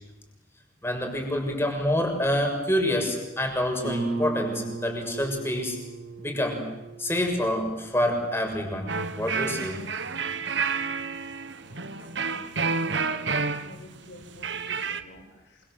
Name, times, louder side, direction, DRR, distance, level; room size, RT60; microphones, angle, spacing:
voice 1, 0.8-5.8 6.2-6.6 7.0-8.9 9.2-9.8, left 1 dB, 15° left, 3 dB, 6.9 m, -27 dB
Guitar, 3.8-9.2, right 3 dB, 90° right, 5.4 m, -36 dB
sound 1, 8.9-15.0, right 5 dB, 70° right, 1.5 m, -30 dB
voice 2, 11.6-13.3 13.6-15.6, left 1 dB, 70° left, -1 dB, 6.7 m, -50 dB
27.5 x 26.5 x 7.8 m, 1.0 s
head